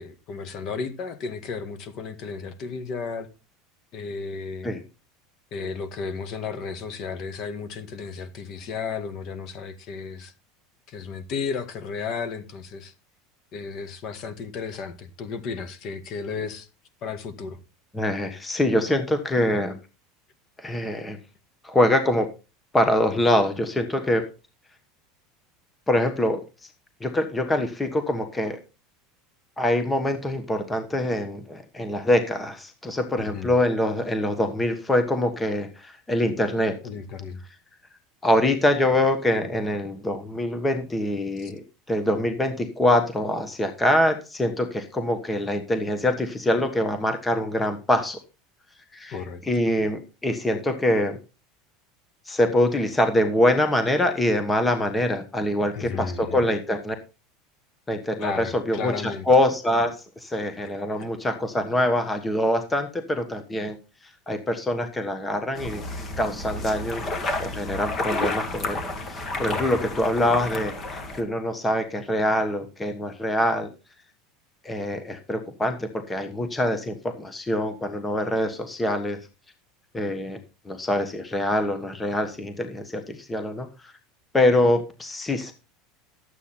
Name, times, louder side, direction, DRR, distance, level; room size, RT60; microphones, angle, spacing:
voice 1, 0.0-3.3 3.9-4.7 5.5-10.3 10.9-12.9 13.5-16.7 17.0-17.6 33.2-33.5 36.8-37.4 41.4-41.5 49.1-49.4 55.7-56.5 58.2-59.3 60.6-61.1 69.5-69.7, left 5 dB, 45° left, 1.8 m, -33 dB
voice 2, 17.9-19.8 20.6-21.2 21.6-22.3 22.7-24.3 25.9-26.4 27.0-28.6 29.6-36.8 38.2-48.2 48.9-49.2 49.4-51.2 52.3-56.9 57.9-63.8 64.3-65.8 66.2-67.0 67.4-73.7 74.6-79.2 79.9-80.4 80.6-83.9 84.3-85.5, left 1 dB, 10° left, 1.3 m, -24 dB
sound 1, 65.6-71.2, left 2 dB, 25° left, 2.1 m, -31 dB
12.0 x 8.2 x 4.3 m
supercardioid pair, 140°, 0 cm